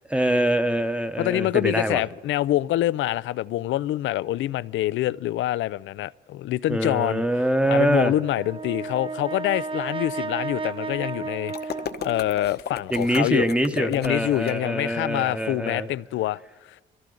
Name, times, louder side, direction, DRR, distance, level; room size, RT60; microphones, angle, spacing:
voice 1, 0.1-2.0 6.7-8.1 12.9-15.9, right 1 dB, 5° right, 0.9 m, -24 dB
voice 2, 1.2-7.4 7.7-11.7 12.0-13.5 13.7-16.4, left 14 dB, 75° left, 0.4 m, -26 dB
Brass instrument, 8.1-12.5, right 4 dB, 25° right, 0.5 m, -33 dB
sound 1, 11.5-14.5, left 7 dB, 55° left, 1.0 m, -35 dB
22.0 x 14.5 x 3.9 m
cardioid pair, 90°, 20 cm